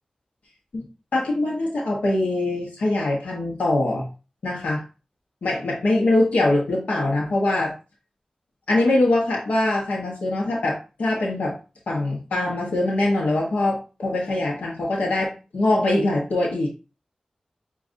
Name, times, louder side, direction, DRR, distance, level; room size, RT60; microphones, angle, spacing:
voice 1, 1.1-4.1 4.4-4.8 5.4-7.7 8.7-11.5 11.9-16.7, left 2 dB, 90° left, -2 dB, 1.1 m, -23 dB
7.2 x 2.5 x 2.6 m, 0.32 s
cardioid pair, 45°, 2 cm